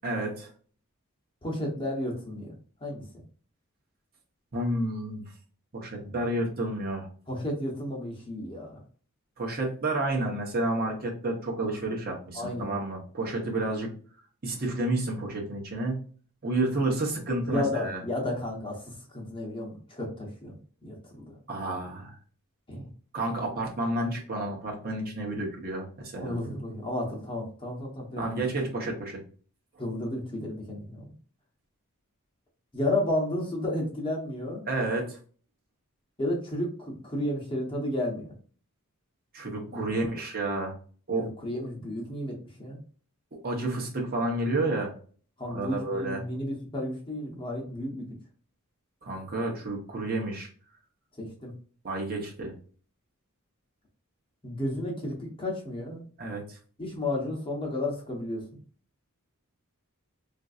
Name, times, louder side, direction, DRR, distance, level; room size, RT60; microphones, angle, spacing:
voice 1, 0.0-0.5 4.5-5.3 5.7-7.1 9.4-13.9 14.4-16.0 16.4-18.0 21.5-22.1 23.1-26.4 28.1-29.2 34.7-35.2 39.3-40.7 41.1-41.3 43.4-44.9 45.5-46.2 49.0-50.5 51.8-52.5 56.2-56.6, right 2 dB, 45° right, -1 dB, 0.9 m, -30 dB
voice 2, 1.4-3.0 6.0-6.2 7.3-8.8 12.4-12.7 17.4-21.4 21.6-21.7 22.7-22.9 26.2-28.2 29.8-31.1 32.7-34.7 36.2-38.3 39.7-39.9 41.2-42.8 45.4-48.2 51.2-51.5 54.4-56.0 56.8-58.4, left 1 dB, 25° left, -1 dB, 0.9 m, -32 dB
3.8 x 2.6 x 2.4 m, 0.43 s
head